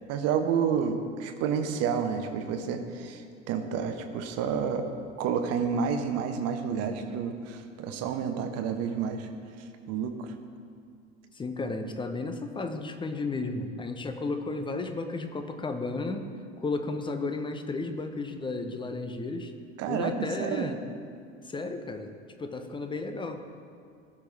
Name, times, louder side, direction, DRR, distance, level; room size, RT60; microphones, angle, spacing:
voice 1, 0.1-4.9 5.2-9.3 9.9-10.3 19.8-20.7, right 7 dB, 45° right, 6 dB, 1.1 m, -30 dB
voice 2, 11.3-16.3 16.6-19.5 19.9-20.8 21.4-22.1 22.4-23.4, left 3 dB, 15° left, 7 dB, 0.8 m, -33 dB
16.5 x 6.0 x 3.4 m, 2.2 s
figure-of-eight pair, 75°, 36 cm